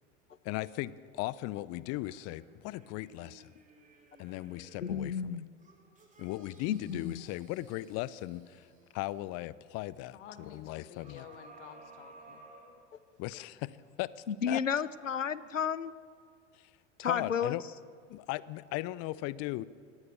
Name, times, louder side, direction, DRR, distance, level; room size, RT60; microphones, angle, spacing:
voice 1, 0.4-3.5 4.2-5.4 6.2-8.7 8.9-10.2 10.5-11.2 13.2-14.6 16.5-16.7 17.0-17.6 18.1-19.6, left 17 dB, 40° left, 20 dB, 0.8 m, -37 dB
sound 1, 1.9-5.1 5.6-9.2 11.0-13.3 13.8-13.9, right 3 dB, 20° right, 5.8 m, -57 dB
voice 2, 4.8-5.5 6.7-7.1 14.3-15.9 17.0-17.6, left 7 dB, 90° left, 18 dB, 0.7 m, -32 dB
voice 3, 10.1-12.4, left 8 dB, 65° left, 8 dB, 2.1 m, -51 dB
23.5 x 18.0 x 6.9 m, 2.1 s
figure-of-eight pair, 85°, 37 cm